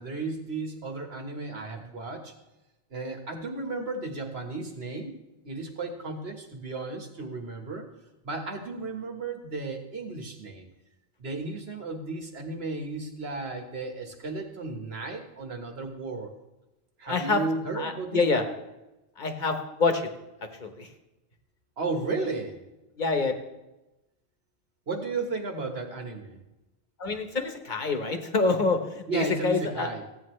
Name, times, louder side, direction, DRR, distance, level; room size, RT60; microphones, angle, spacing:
voice 1, 0.0-2.3 2.9-5.1 5.4-7.8 8.2-10.7 11.2-16.3 17.0-18.4 21.8-22.6 24.9-26.4 29.1-30.0, right 3 dB, 75° right, 3 dB, 1.7 m, -34 dB
voice 2, 17.1-17.4 17.7-18.4 19.2-20.1 20.6-20.9 23.0-23.3 27.0-29.9, left 3 dB, 50° left, 6 dB, 1.2 m, -26 dB
15.0 x 8.9 x 3.2 m, 0.99 s
omnidirectional pair, 1.1 m